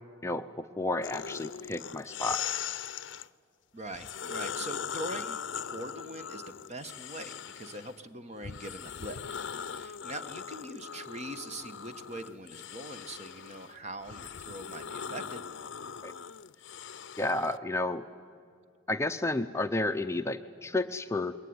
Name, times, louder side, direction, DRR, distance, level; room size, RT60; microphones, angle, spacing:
voice 1, 0.2-2.4 16.0-16.1 17.2-18.0 18.9-21.3, left 2 dB, 15° left, 8 dB, 0.6 m, -31 dB
sound 1, 1.0-3.3 3.9-8.0 8.4-17.6, left 7 dB, 70° left, 0.6 m, -40 dB
voice 2, 3.7-9.2 9.5-15.5, right 1 dB, 35° right, 9 dB, 1.3 m, -42 dB
27.5 x 22.0 x 9.6 m, 2.3 s
head